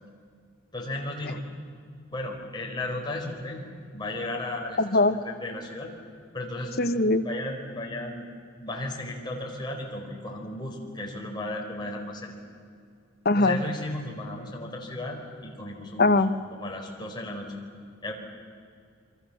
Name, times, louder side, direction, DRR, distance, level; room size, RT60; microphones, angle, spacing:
voice 1, 0.7-1.4 2.1-3.6 3.9-4.8 5.1-5.9 6.3-6.7 7.2-8.2 8.6-12.3 13.4-16.2 16.5-17.5 18.0-18.1, left 1 dB, 20° left, -1 dB, 4.6 m, -34 dB
voice 2, 4.8-5.2 6.8-7.2 13.2-13.6 16.0-16.3, left 2 dB, 50° left, 10 dB, 1.2 m, -21 dB
28.0 x 24.0 x 7.2 m, 2.3 s
head